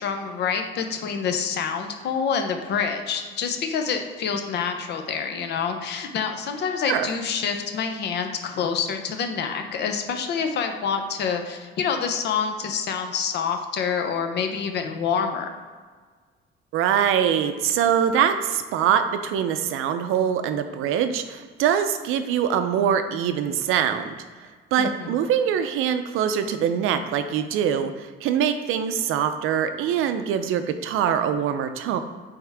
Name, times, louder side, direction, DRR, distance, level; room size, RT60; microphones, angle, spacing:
voice 1, 0.0-15.5 24.8-25.2, left 6 dB, 55° left, 5 dB, 0.7 m, -27 dB
voice 2, 16.7-24.1 24.4-32.0, right 8 dB, 90° right, 9 dB, 0.6 m, -23 dB
8.4 x 3.6 x 3.5 m, 1.5 s
cardioid pair, 175°, 21 cm